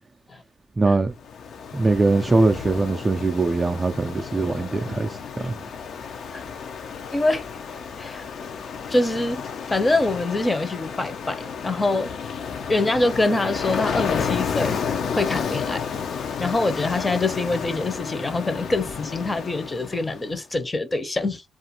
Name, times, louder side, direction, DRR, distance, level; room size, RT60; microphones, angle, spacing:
voice 1, 0.8-1.1 1.7-5.6, right 3 dB, 25° right, 0.4 m, -22 dB
Ocean, 1.2-20.3, left 6 dB, 65° left, 0.6 m, -31 dB
voice 2, 7.1-7.4 8.0-8.2 8.9-12.1 12.7-14.8 15.1-15.8 16.4-21.4, left 2 dB, 20° left, 0.7 m, -24 dB
2.5 x 2.4 x 2.8 m
cardioid pair, 90°, 0 cm